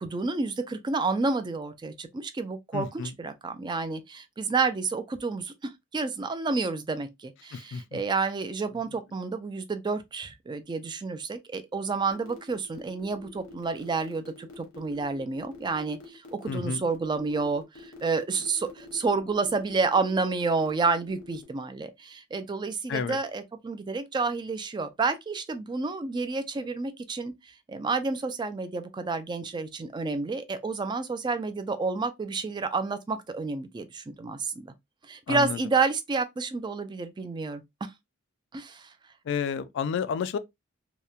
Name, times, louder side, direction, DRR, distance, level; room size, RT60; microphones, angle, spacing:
voice 1, 0.0-27.3 27.7-34.7 35.1-37.6 38.5-38.9, right 4 dB, 20° right, 0.3 m, -30 dB
voice 2, 2.7-3.1 7.5-8.0 16.5-16.8 22.9-23.2 35.3-35.6 39.3-40.4, left 6 dB, 60° left, 0.3 m, -30 dB
sound 1, 12.1-21.4, left 1 dB, 85° left, 0.8 m, -48 dB
2.8 x 2.1 x 2.3 m
head